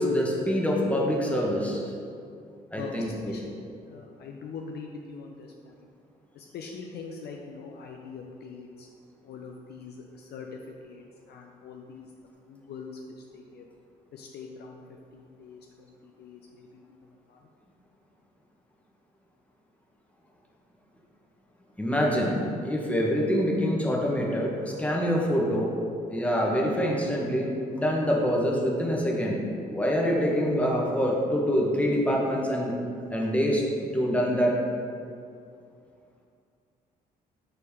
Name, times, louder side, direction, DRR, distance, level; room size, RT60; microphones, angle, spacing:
voice 1, 0.0-1.8 2.7-3.4 21.8-25.7 26.1-29.4 29.7-32.7 33.1-34.5, equal, 5° left, -3 dB, 1.3 m, -25 dB
voice 2, 2.8-3.4 3.9-5.9 6.3-8.9 9.2-10.5 10.8-12.0 12.5-13.7 14.1-14.8 15.1-16.8 17.3-17.4, left 5 dB, 50° left, 1 dB, 0.5 m, -43 dB
6.6 x 4.2 x 3.6 m, 2.4 s
figure-of-eight pair, 45°, 21 cm